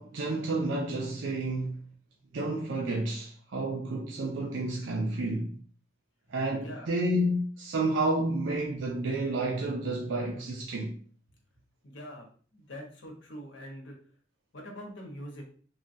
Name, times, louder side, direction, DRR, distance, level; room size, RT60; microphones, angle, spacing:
voice 1, 0.0-1.8 2.3-5.6 6.3-10.9, right 2 dB, 80° right, 0.5 m, -30 dB
voice 2, 6.6-6.9 11.5-14.0 14.5-15.4, equal, 80° left, 0.9 m, -44 dB
3.2 x 2.2 x 2.6 m
head